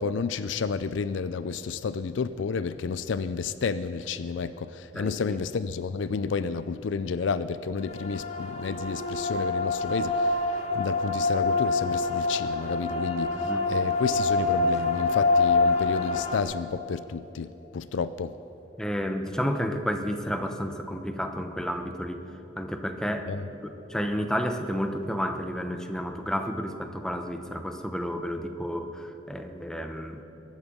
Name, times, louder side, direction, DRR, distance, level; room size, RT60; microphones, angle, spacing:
voice 1, 0.0-10.4 10.7-18.3 23.3-23.4, left 5 dB, 80° left, 14 dB, 0.4 m, -31 dB
voice 2, 4.9-5.4 13.3-13.6 18.8-22.2 22.5-23.3 23.6-30.2, equal, 5° left, 6 dB, 0.9 m, -31 dB
sound 1, 7.8-16.4, left 3 dB, 35° left, 1.3 m, -26 dB
22.5 x 8.9 x 7.1 m, 3.0 s
head